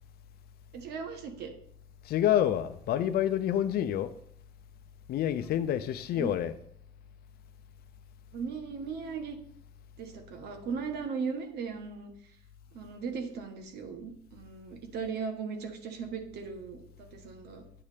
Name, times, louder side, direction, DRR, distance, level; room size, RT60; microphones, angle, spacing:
voice 1, 0.7-1.5 6.1-6.3 8.3-9.4 10.0-12.1 12.7-17.6, right 5 dB, 75° right, 1.3 m, -37 dB
voice 2, 2.0-4.1 5.1-6.6, left 11 dB, 65° left, 0.6 m, -28 dB
9.6 x 3.2 x 5.0 m
cardioid pair, 110°, 17 cm